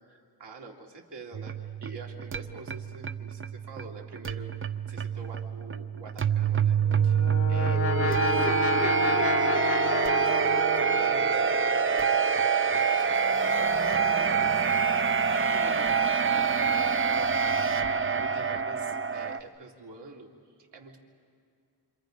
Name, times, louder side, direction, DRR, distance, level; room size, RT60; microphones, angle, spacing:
voice 1, 0.1-4.5 4.9-8.9 9.5-11.5 11.8-21.0, right 3 dB, 75° right, -1 dB, 2.8 m, -46 dB
sound 1, 1.3-19.4, right 6 dB, 30° right, 0.6 m, -26 dB
Brass instrument, 6.7-11.5, left 5 dB, 35° left, 0.8 m, -31 dB
27.5 x 27.0 x 5.2 m, 2.3 s
wide cardioid pair, 125°, 41 cm